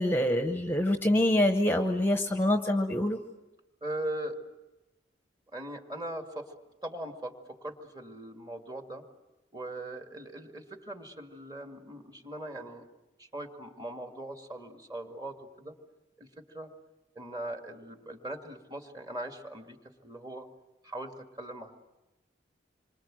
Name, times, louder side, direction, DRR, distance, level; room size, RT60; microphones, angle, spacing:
voice 1, 0.0-3.2, left 1 dB, 10° left, 5 dB, 0.9 m, -25 dB
voice 2, 3.8-4.4 5.5-6.5 6.8-9.0 9.5-12.8 13.2-15.8 16.2-16.7 17.2-19.8 20.0-20.5 20.8-21.8, right 1 dB, 20° right, 4 dB, 2.1 m, -40 dB
27.0 x 24.5 x 7.6 m, 1.0 s
head